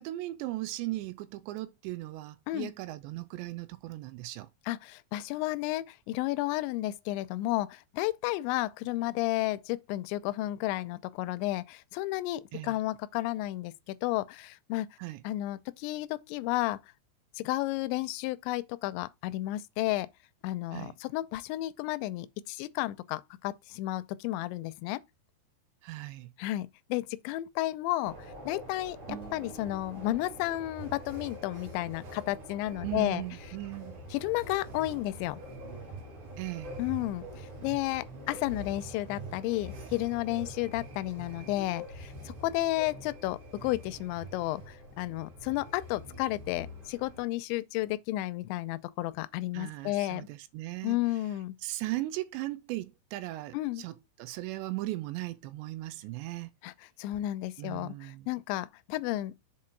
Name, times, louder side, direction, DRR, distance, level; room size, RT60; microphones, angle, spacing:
voice 1, 0.0-4.5 12.5-12.7 15.0-15.2 20.7-20.9 25.8-26.3 32.8-34.0 36.4-36.7 49.5-51.0 51.6-56.5 57.6-58.3, right 17 dB, 80° right, 2.8 m, -37 dB
voice 2, 4.7-14.9 15.2-16.8 17.4-20.1 20.4-25.0 26.4-33.2 34.1-35.4 36.8-50.3 50.8-51.6 53.5-53.8 56.6-56.7 57.0-59.3, left 16 dB, 85° left, 2.8 m, -32 dB
sound 1, 28.0-47.2, right 1 dB, 45° right, 4.0 m, -45 dB
sound 2, 29.1-32.2, right 7 dB, 65° right, 1.6 m, -50 dB
7.5 x 4.3 x 4.5 m
omnidirectional pair, 5.3 m